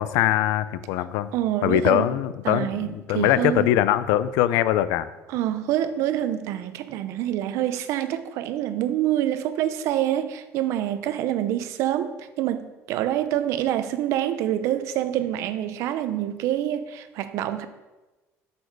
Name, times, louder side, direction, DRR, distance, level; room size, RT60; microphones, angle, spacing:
voice 1, 0.0-1.3 1.6-5.1, left 13 dB, 90° left, 0.4 m, -22 dB
voice 2, 1.3-2.1 2.4-3.7 5.3-17.7, right 12 dB, 70° right, 0.6 m, -26 dB
6.9 x 6.4 x 4.7 m
cardioid pair, 150°, 5 cm